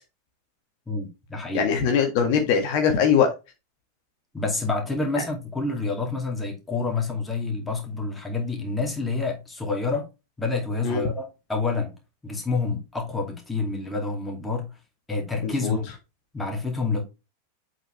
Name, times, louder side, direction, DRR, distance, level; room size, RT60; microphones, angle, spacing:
voice 1, 0.9-1.6 4.3-10.1 10.4-11.9 12.2-14.8 15.1-15.9 16.3-17.1, left 3 dB, 10° left, 2.4 m, -28 dB
voice 2, 1.5-3.3 10.8-11.0 15.4-15.8, left 7 dB, 45° left, 1.7 m, -21 dB
7.8 x 4.9 x 3.2 m
figure-of-eight pair, 90°, 0 cm